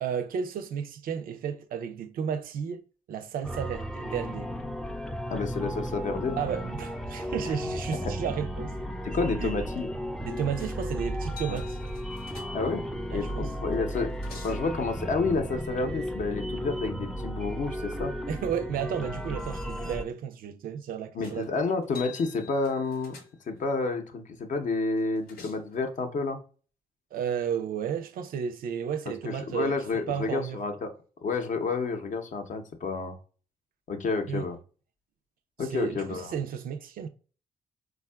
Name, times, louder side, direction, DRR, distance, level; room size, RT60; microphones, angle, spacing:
voice 1, 0.0-2.8 3.1-4.5 6.4-8.7 9.4-9.5 10.2-11.8 13.1-13.5 18.3-21.5 27.1-29.8 30.1-30.6 34.3-34.5 35.6-37.1, right 8 dB, 70° right, 0.4 m, -33 dB
sound 1, 3.4-20.0, equal, 5° left, 0.3 m, -34 dB
voice 2, 5.3-6.4 8.0-8.1 9.0-9.9 11.5-11.6 12.5-12.8 13.1-14.1 14.4-18.1 21.1-23.1 23.5-26.4 29.1-30.9 31.2-33.2 33.9-34.6 35.6-36.3, left 4 dB, 55° left, 0.6 m, -30 dB
sound 2, 10.6-10.9 11.3-12.9 13.7-14.7 21.2-21.5 21.8-23.7 25.0-25.7, left 6 dB, 90° left, 0.8 m, -48 dB
3.5 x 2.3 x 2.2 m
cardioid pair, 65°, 15 cm